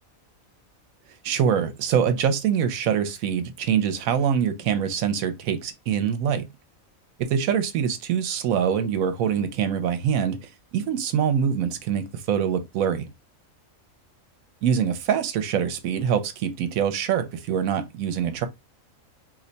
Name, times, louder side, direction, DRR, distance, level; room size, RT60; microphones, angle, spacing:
voice 1, 1.2-6.5 7.2-10.4 10.7-13.1 14.6-18.5, right 8 dB, 85° right, 1.0 m, -24 dB
2.7 x 2.1 x 3.9 m
omnidirectional pair, 1.4 m